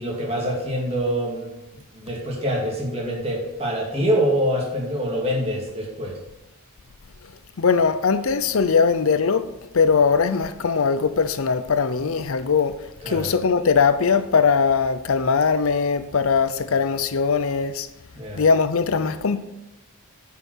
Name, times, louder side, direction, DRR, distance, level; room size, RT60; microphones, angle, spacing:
voice 1, 0.0-1.6 1.9-6.2 12.0-12.1 13.0-13.3 18.1-18.4, equal, 25° right, 2.3 m, -25 dB
voice 2, 7.6-9.5 9.7-12.8 13.1-17.9 18.4-19.4, left 5 dB, 65° left, 0.6 m, -20 dB
9.6 x 5.7 x 6.2 m
head